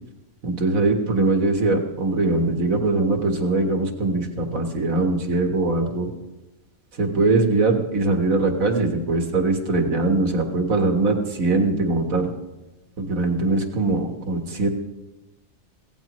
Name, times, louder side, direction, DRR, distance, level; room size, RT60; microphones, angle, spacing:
voice 1, 0.4-6.1 7.0-12.3 13.0-14.7, right 2 dB, 85° right, 3 dB, 1.9 m, -21 dB
24.0 x 16.5 x 3.1 m, 1.1 s
omnidirectional pair, 1.4 m